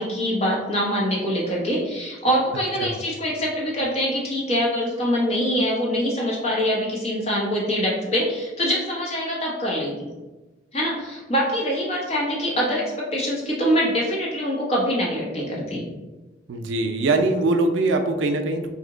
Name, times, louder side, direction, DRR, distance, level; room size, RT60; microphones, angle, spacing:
voice 1, 0.0-10.1 10.7-15.8, equal, 35° left, -4 dB, 0.8 m, -24 dB
voice 2, 16.5-18.7, right 2 dB, 85° right, 5 dB, 0.4 m, -22 dB
2.7 x 2.1 x 3.7 m, 1.1 s
head